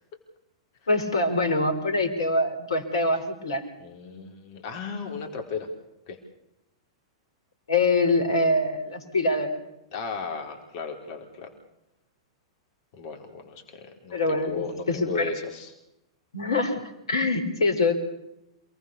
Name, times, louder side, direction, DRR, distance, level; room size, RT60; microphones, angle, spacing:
voice 1, 0.9-3.6 7.7-9.6 14.1-15.3 16.3-18.0, left 2 dB, 70° left, 9 dB, 4.0 m, -24 dB
voice 2, 3.8-5.7 6.1-6.2 9.9-11.5 12.9-15.7, left 5 dB, 45° left, 4 dB, 4.6 m, -35 dB
28.0 x 19.5 x 6.9 m, 0.86 s
figure-of-eight pair, 100°, 3 cm